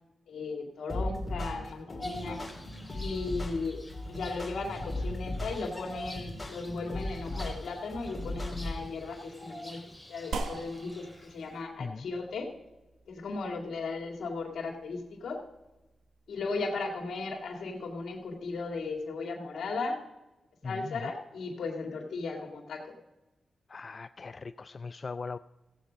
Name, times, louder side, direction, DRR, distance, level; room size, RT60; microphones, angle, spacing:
voice 1, 0.3-2.4 2.9-3.8 4.1-9.8 10.1-12.5 13.1-15.4 16.3-20.0 20.6-22.9, left 3 dB, 80° left, 1 dB, 2.1 m, -36 dB
sound 1, 0.9-8.9, left 1 dB, 20° left, 2.6 m, -37 dB
Bird vocalization bird call bird song, 2.0-11.6, left 1 dB, 5° left, 2.4 m, -48 dB
sound 2, 10.3-19.0, right 4 dB, 85° right, 1.0 m, -45 dB
voice 2, 20.6-21.1 23.7-25.4, left 4 dB, 45° left, 12 dB, 0.3 m, -39 dB
15.5 x 8.2 x 5.1 m, 1.0 s
cardioid pair, 80°, 0 cm